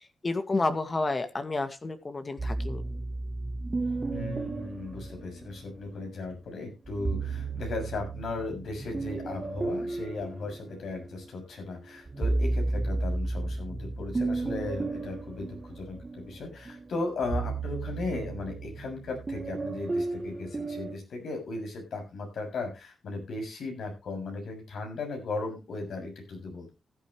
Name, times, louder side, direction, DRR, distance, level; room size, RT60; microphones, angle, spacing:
voice 1, 0.2-2.8, left 3 dB, 40° left, 9 dB, 2.1 m, -30 dB
sound 1, 2.4-5.9 6.9-11.3 11.7-21.0, right 3 dB, 35° right, 2.0 m, -33 dB
voice 2, 4.1-26.7, left 3 dB, 75° left, 2 dB, 6.8 m, -36 dB
15.5 x 11.0 x 3.2 m, 0.28 s
supercardioid pair, 40°, 0 cm